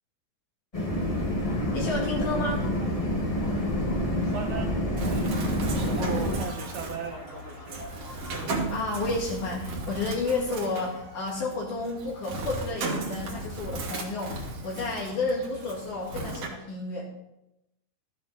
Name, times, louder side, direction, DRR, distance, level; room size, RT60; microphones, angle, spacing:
sound 1, 0.7-6.4, left 1 dB, 25° left, 0.7 m, -28 dB
sound 2, 1.3-8.8, left 2 dB, 50° left, 4.4 m, -48 dB
voice 1, 1.7-2.7 8.7-17.1, left 3 dB, 80° left, -5 dB, 3.8 m, -31 dB
voice 2, 4.2-7.9, right 5 dB, 75° right, 4 dB, 2.7 m, -38 dB
Bird, 5.0-16.5, right 2 dB, 55° right, 2.6 m, -36 dB
13.5 x 8.5 x 4.0 m, 0.89 s
omnidirectional pair, 3.5 m